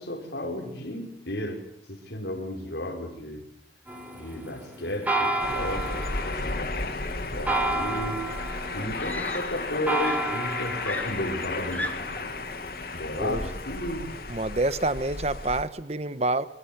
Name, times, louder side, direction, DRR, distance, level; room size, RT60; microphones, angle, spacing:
voice 1, 0.0-1.6 1.9-3.4 4.1-12.3 12.9-14.2, left 1 dB, 80° left, 4 dB, 5.7 m, -34 dB
sound 1, 3.9-14.0, right 2 dB, 10° right, 4.1 m, -33 dB
sound 2, 5.4-15.6, left 3 dB, 55° left, 2.5 m, -34 dB
Screaming, 9.0-9.7 10.0-12.3 13.3-13.5, left 1 dB, 10° left, 1.9 m, -37 dB
voice 2, 14.3-16.5, right 2 dB, 35° right, 14 dB, 1.2 m, -27 dB
25.0 x 23.5 x 8.2 m, 0.76 s
head